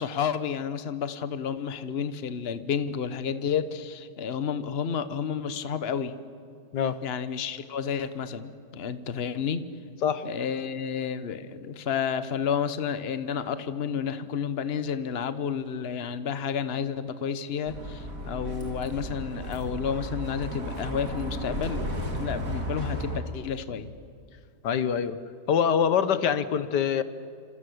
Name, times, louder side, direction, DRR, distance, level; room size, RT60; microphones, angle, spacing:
voice 1, 0.0-6.1 7.0-9.6 10.2-21.9 22.1-23.9, left 7 dB, 40° left, 12 dB, 1.3 m, -31 dB
Bus, 17.7-23.2, right 1 dB, 55° right, 4.0 m, -34 dB
voice 2, 24.6-25.2 25.5-27.0, left 7 dB, 85° left, 13 dB, 1.7 m, -24 dB
28.0 x 26.5 x 8.0 m, 2.3 s
omnidirectional pair, 1.8 m